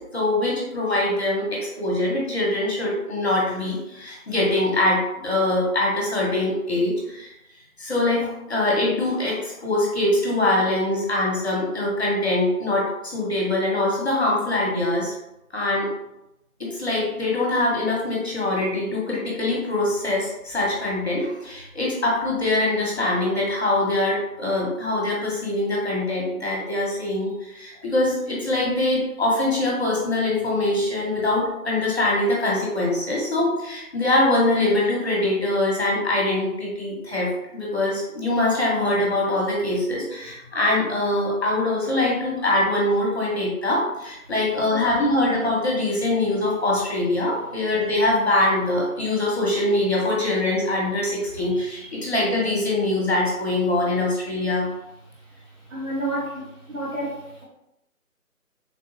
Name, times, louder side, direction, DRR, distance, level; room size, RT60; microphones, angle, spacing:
voice 1, 0.1-7.3 7.8-15.2 15.5-15.9 16.6-54.7, left 2 dB, 45° left, -4 dB, 0.8 m, -23 dB
voice 2, 55.7-57.2, right 1 dB, 55° right, -5 dB, 1.2 m, -29 dB
3.5 x 2.0 x 2.5 m, 0.87 s
figure-of-eight pair, 160°, 45 cm